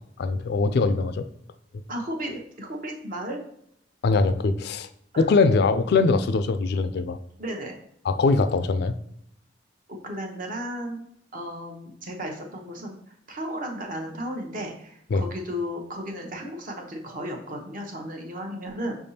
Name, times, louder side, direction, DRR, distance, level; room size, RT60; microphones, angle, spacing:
voice 1, 0.2-1.3 2.3-2.4 4.0-4.9 5.2-7.2 8.0-8.9 15.1-15.2, left 3 dB, 60° left, 11 dB, 0.3 m, -22 dB
voice 2, 1.9-3.4 5.1-5.2 7.4-7.7 9.9-11.0 11.3-13.0 13.3-19.0, equal, 50° right, 2 dB, 0.9 m, -34 dB
5.6 x 3.4 x 2.7 m, 0.72 s
head